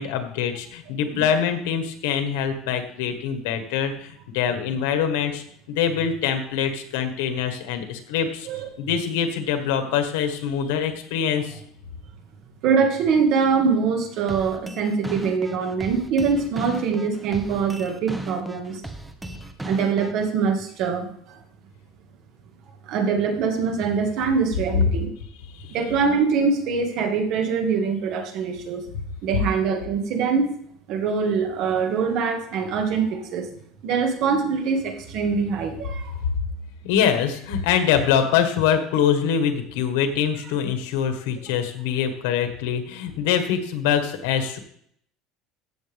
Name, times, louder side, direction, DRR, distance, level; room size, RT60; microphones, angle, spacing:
voice 1, 0.0-8.5 8.8-11.6 25.6-25.8 36.8-44.6, left 8 dB, 85° left, 6 dB, 1.6 m, -24 dB
voice 2, 12.6-18.9 19.6-21.4 22.9-25.1 25.7-28.8 29.2-30.5 30.9-33.5 33.8-36.1, right 5 dB, 55° right, 4 dB, 1.9 m, -23 dB
sound 1, 14.3-20.3, right 1 dB, 5° right, 0.8 m, -35 dB
15.0 x 7.2 x 3.5 m, 0.67 s
cardioid pair, 155°, 0 cm